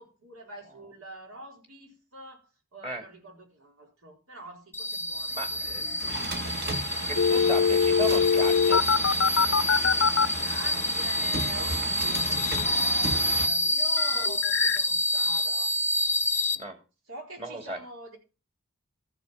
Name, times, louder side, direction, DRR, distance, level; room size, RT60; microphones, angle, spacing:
voice 1, 0.0-6.1 7.3-7.7 10.4-15.7 16.3-16.4 17.1-18.2, right 1 dB, 75° right, 1 dB, 4.2 m, -45 dB
sound 1, 4.7-16.6, left 1 dB, 10° left, 0.5 m, -28 dB
voice 2, 5.3-5.9 7.1-8.8 14.1-14.3 16.5-16.8 17.4-17.8, right 1 dB, 30° right, 3 dB, 2.9 m, -36 dB
sound 2, 5.3-13.5, right 2 dB, 50° right, 1.8 m, -35 dB
sound 3, 7.1-10.3 14.0-14.8, left 6 dB, 60° left, 0.6 m, -23 dB
14.0 x 6.8 x 5.7 m, 0.32 s
head